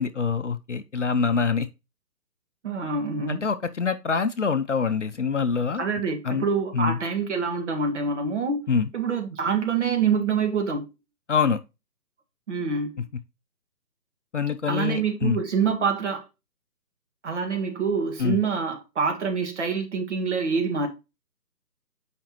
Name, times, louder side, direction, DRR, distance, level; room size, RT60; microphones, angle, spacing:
voice 1, 0.0-1.7 3.3-5.8 6.2-6.4 6.7-7.0 8.7-8.9 11.3-11.6 14.3-15.4 18.2-18.4, left 5 dB, 45° left, 0.6 m, -25 dB
voice 2, 2.6-3.5 5.8-10.9 12.5-13.0 14.7-16.2 17.2-20.9, right 5 dB, 45° right, 1.7 m, -26 dB
8.4 x 5.2 x 2.9 m
figure-of-eight pair, 155°, 49 cm